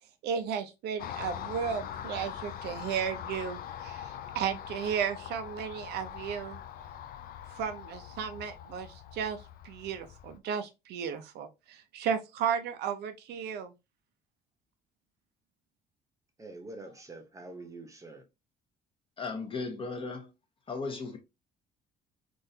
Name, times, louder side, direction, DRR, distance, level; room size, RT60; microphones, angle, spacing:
voice 1, 0.2-6.6 7.5-13.7, right 7 dB, 80° right, 0.6 m, -34 dB
Car passing by, 1.0-10.4, left 9 dB, 60° left, 0.4 m, -42 dB
voice 2, 16.4-18.2, right 2 dB, 20° right, 0.9 m, -45 dB
voice 3, 19.2-20.3 20.7-21.2, left 4 dB, 30° left, 1.0 m, -36 dB
3.7 x 2.5 x 2.7 m
cardioid pair, 110°, 17 cm